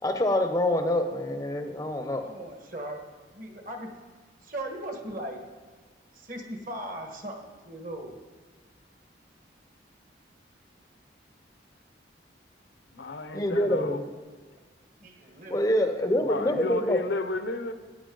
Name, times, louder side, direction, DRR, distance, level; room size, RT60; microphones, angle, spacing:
voice 1, 0.0-2.3 13.3-14.0 15.5-17.0, left 1 dB, 20° left, 0.6 m, -26 dB
voice 2, 2.2-3.0 3.3-3.9 4.4-5.4 6.1-8.1 15.0-15.7, right 1 dB, 45° right, 1.5 m, -38 dB
voice 3, 12.9-14.0 16.2-17.7, left 3 dB, 75° left, 0.8 m, -32 dB
15.5 x 9.5 x 3.8 m
head